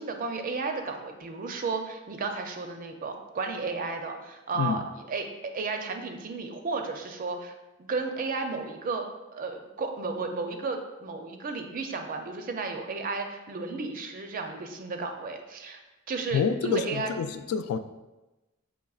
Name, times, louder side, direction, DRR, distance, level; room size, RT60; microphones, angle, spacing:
voice 1, 0.0-4.8 5.1-9.1 9.3-17.1, right 4 dB, 40° right, 5 dB, 0.4 m, -33 dB
voice 2, 16.3-17.8, left 6 dB, 85° left, 14 dB, 0.3 m, -28 dB
6.0 x 3.0 x 2.3 m, 1.1 s
head